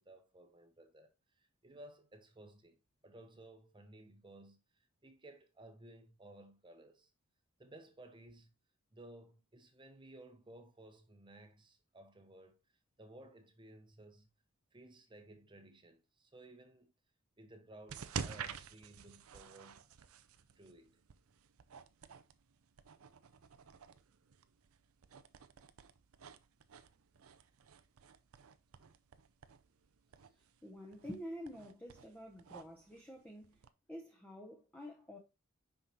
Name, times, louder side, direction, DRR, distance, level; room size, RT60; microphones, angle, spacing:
voice 1, 0.0-7.1 7.6-8.5 8.9-14.3 14.7-16.9 17.4-19.8 20.5-21.0, right 1 dB, 20° right, 0.8 m, -57 dB
sound 1, 17.9-33.7, right 6 dB, 80° right, 0.6 m, -50 dB
voice 2, 30.6-33.6 33.9-35.2, equal, 5° left, 0.8 m, -48 dB
5.6 x 5.6 x 3.0 m
head